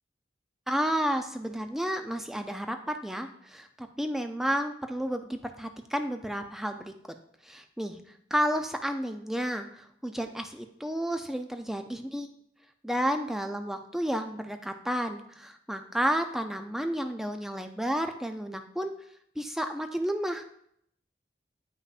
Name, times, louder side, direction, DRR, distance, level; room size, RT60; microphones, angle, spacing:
voice 1, 0.7-6.9 7.4-8.0 8.3-12.3 12.8-18.9 19.4-20.4, equal, ahead, 6 dB, 0.4 m, -31 dB
8.5 x 5.6 x 2.4 m, 0.70 s
head